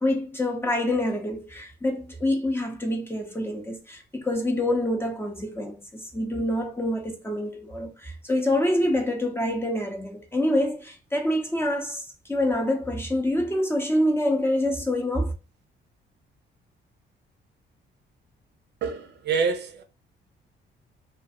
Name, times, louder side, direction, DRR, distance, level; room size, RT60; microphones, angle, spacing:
voice 1, 0.0-15.3, left 1 dB, 10° left, 0.6 m, -26 dB
voice 2, 18.8-19.8, right 5 dB, 60° right, 0.6 m, -27 dB
2.5 x 2.4 x 2.6 m
cardioid pair, 90°, 20 cm